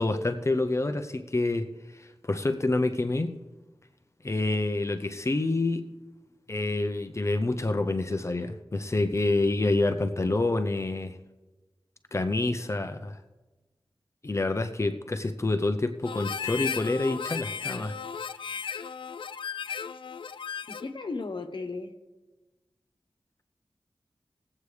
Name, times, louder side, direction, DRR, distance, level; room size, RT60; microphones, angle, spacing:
voice 1, 0.0-3.4 4.2-5.9 6.5-11.2 12.1-13.2 14.2-17.9, left 2 dB, 35° left, 8 dB, 0.7 m, -27 dB
Harmonica, 16.0-21.0, left 7 dB, 90° left, 0.4 m, -35 dB
voice 2, 20.7-21.9, left 3 dB, 70° left, 7 dB, 1.1 m, -35 dB
20.0 x 8.3 x 3.3 m, 1.2 s
wide cardioid pair, 70°, 8 cm